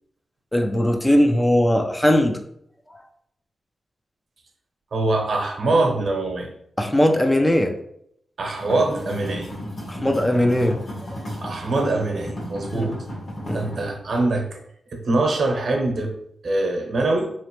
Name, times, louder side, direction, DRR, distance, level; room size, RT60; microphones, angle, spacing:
voice 1, 0.5-2.4 6.8-7.7 9.9-10.8 12.7-12.9 13.5-13.6, left 1 dB, 10° left, 4 dB, 0.4 m, -19 dB
voice 2, 4.9-6.5 8.4-9.5 11.4-13.0 13.5-14.6 14.9-16.1 16.4-17.3, right 2 dB, 60° right, 2 dB, 0.9 m, -23 dB
sound 1, 8.6-13.8, equal, 55° left, 1.4 m, -34 dB
3.9 x 3.1 x 3.1 m, 0.71 s
cardioid pair, 80°, 0 cm